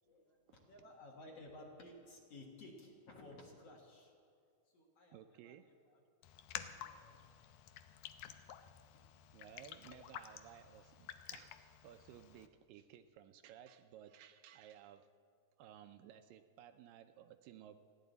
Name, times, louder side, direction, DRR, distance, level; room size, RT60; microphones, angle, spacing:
voice 1, 0.1-4.1 4.7-6.0 6.5-7.3 8.6-9.0, left 2 dB, 50° left, -1 dB, 2.2 m, -57 dB
voice 2, 5.1-5.6 9.3-15.1 15.6-17.8, right 10 dB, 80° right, 9 dB, 2.2 m, -57 dB
Raindrop, 6.2-12.5, left 10 dB, 85° left, 1.7 m, -51 dB
29.5 x 11.0 x 4.0 m, 2.3 s
omnidirectional pair, 4.1 m